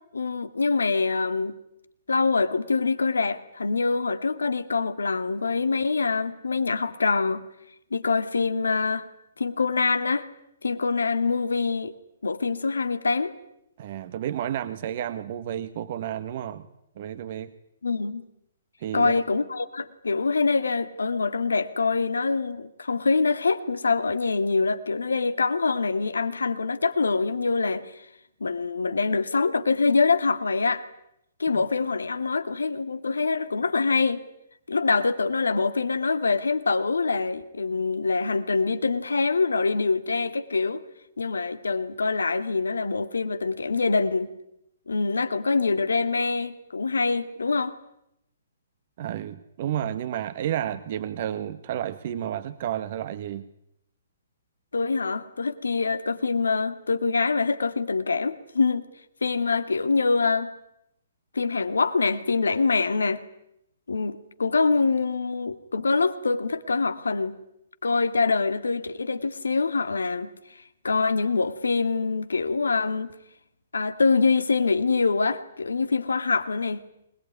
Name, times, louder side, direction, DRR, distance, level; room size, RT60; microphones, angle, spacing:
voice 1, 0.1-1.6 2.1-7.4 7.9-9.1 9.4-10.3 10.6-11.9 12.2-13.3 17.8-18.2 18.9-28.0 28.4-30.8 31.4-34.2 34.7-40.8 41.2-44.3 44.9-47.7 54.7-58.9 59.2-60.5 61.3-63.2 63.9-67.4 67.8-70.3 70.8-73.1 73.7-76.8, left 4 dB, 75° left, 11 dB, 2.3 m, -25 dB
voice 2, 13.8-16.7 17.0-17.5 18.8-19.2 49.0-53.5, right 11 dB, 45° right, 11 dB, 1.7 m, -31 dB
25.0 x 20.5 x 9.7 m, 0.78 s
figure-of-eight pair, 125°, 0 cm